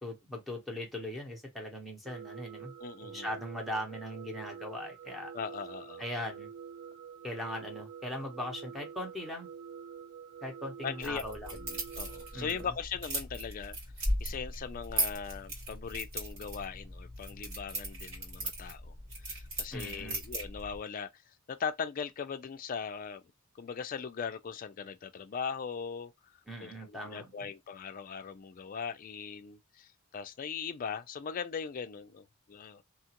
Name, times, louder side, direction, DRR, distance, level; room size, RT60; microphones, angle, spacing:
voice 1, 0.0-2.7 3.1-5.3 6.0-6.5 7.2-9.5 10.4-11.5 12.3-12.7 19.7-20.2 26.5-27.3, left 1 dB, ahead, 0.8 m, -39 dB
sound 1, 2.0-12.7, right 7 dB, 60° right, 0.4 m, -47 dB
voice 2, 2.8-3.3 5.3-6.0 10.8-11.2 11.5-13.8 14.2-19.0 19.3-23.2 23.5-26.1 26.6-32.8, left 6 dB, 40° left, 0.4 m, -39 dB
sound 2, 11.0-20.8, right 1 dB, 85° right, 1.9 m, -38 dB
2.9 x 2.3 x 2.8 m
head